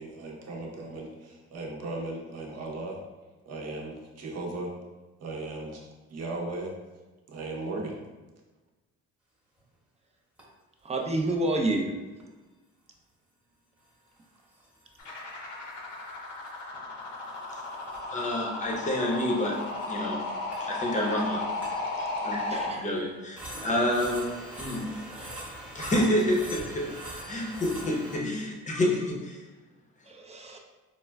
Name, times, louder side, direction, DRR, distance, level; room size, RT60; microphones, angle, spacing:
voice 1, 0.0-3.0 3.5-4.7 5.2-6.7 7.3-8.0, right 2 dB, 55° right, -1 dB, 0.7 m, -37 dB
sound 1, 9.6-9.7 10.4-10.5 12.2-12.3 14.2-15.4 15.7-15.8 16.1-16.2 16.5-16.6 17.4-22.5 22.9-23.0 23.4-28.4, right 1 dB, 5° right, 0.9 m, -43 dB
voice 2, 10.8-11.9 22.5-22.9 25.1-25.4 27.3-27.4 30.1-30.6, right 2 dB, 20° right, 1 dB, 0.4 m, -29 dB
sound 2, 15.0-22.7, left 2 dB, 70° left, 0.8 m, -34 dB
voice 3, 18.1-19.6 19.9-20.2 20.6-21.5 22.0-24.9 25.7-26.9 27.3-29.4, left 1 dB, 25° left, -1 dB, 0.7 m, -28 dB
4.3 x 2.1 x 2.2 m, 1.2 s
cardioid pair, 90°, 30 cm